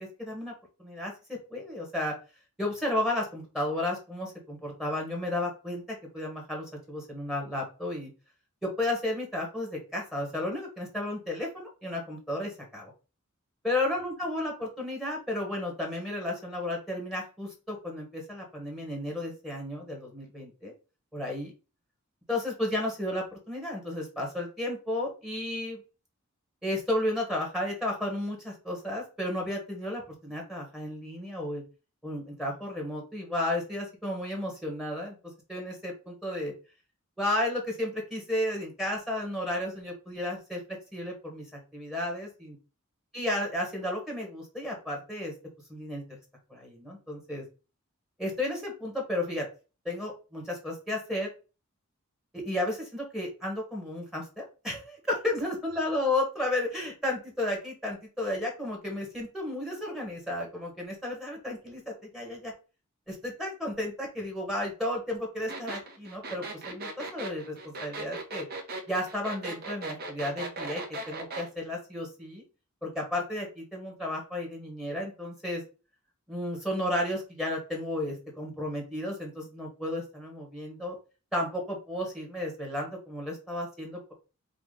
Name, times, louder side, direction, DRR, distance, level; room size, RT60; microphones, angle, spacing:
voice 1, 0.2-0.5 0.8-2.1 2.6-8.1 8.6-12.9 13.6-20.7 21.1-21.5 22.3-25.8 26.6-31.6 32.0-35.1 35.5-36.5 37.2-40.6 40.9-42.6 43.1-45.3 45.7-46.0 46.5-47.4 48.2-49.5 49.8-51.3 52.3-62.5 63.1-68.4 68.9-72.4 72.8-75.6 76.3-80.9 81.3-84.1, left 1 dB, ahead, -1 dB, 1.3 m, -33 dB
sound 1, 65.5-71.5, right 3 dB, 45° right, 1.1 m, -38 dB
4.9 x 2.4 x 3.8 m, 0.32 s
head